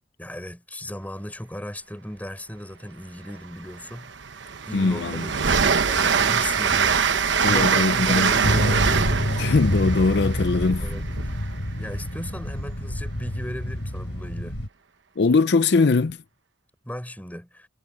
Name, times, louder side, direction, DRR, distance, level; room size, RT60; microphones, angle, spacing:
voice 1, 0.2-4.1 4.7-7.0 7.4-8.8 10.8-11.1 11.8-14.6 16.8-17.7, equal, 10° left, 6.3 m, -36 dB
Train, 3.3-3.4 3.8-11.5, right 6 dB, 80° right, 1.0 m, -23 dB
voice 2, 4.7-5.2 7.4-8.3 9.4-10.9 15.2-16.2, left 3 dB, 65° left, 0.5 m, -21 dB
sound 1, 8.4-14.7, equal, 85° left, 3.6 m, -27 dB
head